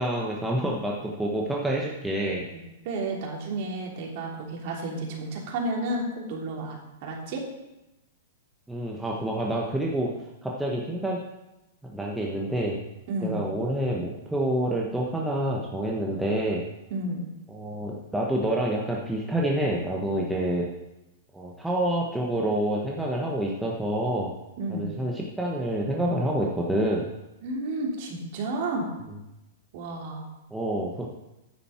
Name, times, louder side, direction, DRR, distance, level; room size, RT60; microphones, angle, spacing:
voice 1, 0.0-2.4 8.7-10.1 10.4-11.2 11.8-12.8 13.2-16.6 17.5-20.7 21.3-24.3 24.7-27.1 30.5-31.1, right 1 dB, 5° right, -3 dB, 1.3 m, -27 dB
voice 2, 2.5-7.4 13.1-13.4 16.9-17.2 24.6-24.9 27.4-28.9 29.7-30.2, right 2 dB, 50° right, -1 dB, 3.0 m, -31 dB
9.3 x 9.1 x 4.5 m, 0.96 s
hypercardioid pair, 135°, 0 cm